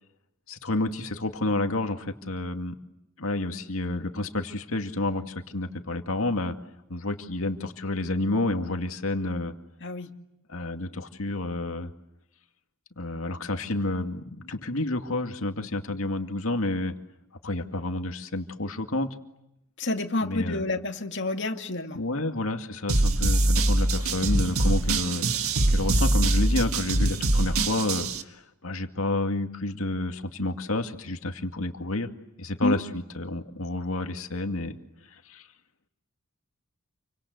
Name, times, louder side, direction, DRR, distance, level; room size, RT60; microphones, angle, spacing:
voice 1, 0.5-2.7 3.2-6.5 6.9-9.5 10.5-11.9 13.0-16.9 17.4-19.1 20.2-20.6 22.0-25.2 25.7-32.1 32.4-34.8 35.1-35.5, left 2 dB, 75° left, 6 dB, 2.3 m, -30 dB
voice 2, 19.8-22.0 32.6-32.8, left 2 dB, 55° left, 4 dB, 2.4 m, -28 dB
sound 1, 22.9-28.2, right 2 dB, 85° right, 1.8 m, -23 dB
29.0 x 25.5 x 8.0 m, 0.85 s
head